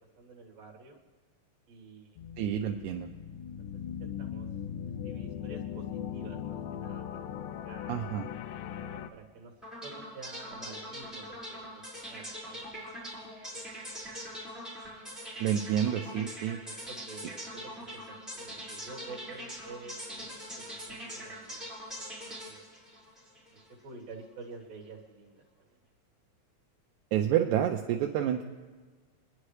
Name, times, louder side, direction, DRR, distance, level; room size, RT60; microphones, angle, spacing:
voice 1, 0.2-1.0 1.7-2.2 4.0-4.5 5.0-5.8 6.1-8.0 8.7-9.5 9.8-11.8 12.1-12.7 16.6-17.7 18.1-20.3 20.5-21.8 22.4-22.7 23.8-25.4, right 3 dB, 60° right, 0 dB, 2.7 m, -49 dB
sound 1, 2.2-9.1, left 9 dB, 85° left, 2.2 m, -39 dB
voice 2, 2.4-3.1 7.9-8.3 15.4-16.6 27.1-28.4, right 10 dB, 80° right, 3 dB, 1.9 m, -29 dB
sound 2, 9.6-23.7, equal, ahead, 4.7 m, -42 dB
27.0 x 10.5 x 3.2 m, 1.3 s
omnidirectional pair, 3.6 m